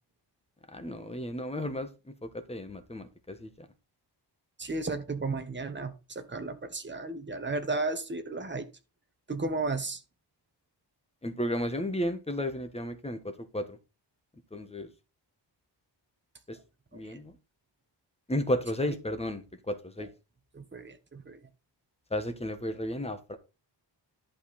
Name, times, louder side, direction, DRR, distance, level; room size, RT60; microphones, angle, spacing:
voice 1, 0.7-1.9 2.2-3.5 11.2-13.2 13.5-13.8 14.5-14.9 16.5-16.6 16.9-17.3 18.3-20.1 22.1-23.4, left 1 dB, 15° left, 1.3 m, -33 dB
voice 2, 4.6-8.7 9.3-10.0 16.9-17.2 18.8-19.0 20.0-20.1 20.5-21.4, right 3 dB, 25° right, 1.4 m, -34 dB
11.5 x 5.6 x 4.2 m
wide cardioid pair, 160°, 43 cm